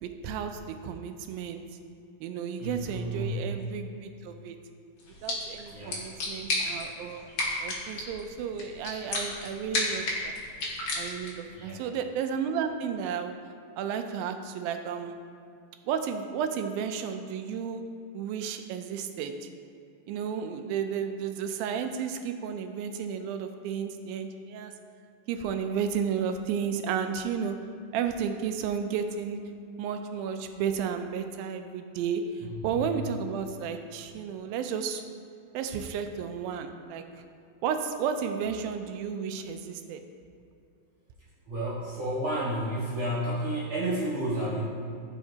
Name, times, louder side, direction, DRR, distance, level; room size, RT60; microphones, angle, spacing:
voice 1, 0.0-1.6 2.2-4.6 5.2-7.2 7.6-10.3 11.0-13.3 13.8-15.1 15.9-17.8 18.1-19.5 20.1-24.7 25.3-27.6 27.9-29.4 29.8-35.0 35.5-37.0 37.6-40.0, right 7 dB, 80° right, 7 dB, 2.3 m, -32 dB
voice 2, 2.6-3.5 5.7-6.1 11.4-11.9 32.4-33.0 41.5-44.8, right 1 dB, 50° right, -10 dB, 2.9 m, -32 dB
sound 1, 5.0-11.5, left 2 dB, 55° left, 1.7 m, -33 dB
13.5 x 5.8 x 2.8 m, 2.5 s
omnidirectional pair, 4.3 m